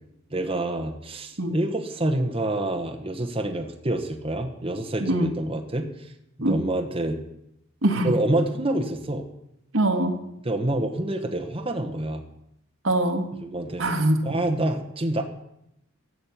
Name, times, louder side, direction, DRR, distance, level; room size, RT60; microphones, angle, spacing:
voice 1, 0.3-6.1 6.4-7.2 8.0-9.3 10.4-12.2 13.4-13.8 14.2-15.2, right 1 dB, 25° right, 3 dB, 1.2 m, -27 dB
voice 2, 7.8-8.1 9.7-10.1 12.8-13.3 13.8-14.2, right 1 dB, 70° right, 5 dB, 1.8 m, -22 dB
13.5 x 7.5 x 8.6 m, 0.82 s
head